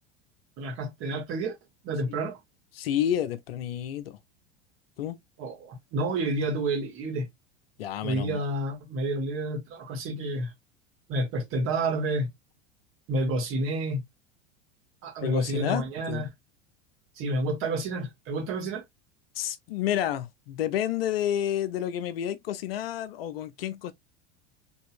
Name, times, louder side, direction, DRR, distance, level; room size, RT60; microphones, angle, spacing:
voice 1, 0.6-1.5 1.8-2.4 5.4-7.3 8.0-10.5 11.1-12.3 13.1-14.0 15.0-16.3 17.2-18.8, right 2 dB, 40° right, 1.9 m, -29 dB
voice 2, 2.7-4.2 5.0-5.2 7.8-8.4 15.2-16.3 19.3-23.9, left 10 dB, 55° left, 0.6 m, -30 dB
4.1 x 3.4 x 2.4 m
figure-of-eight pair, 85°, 34 cm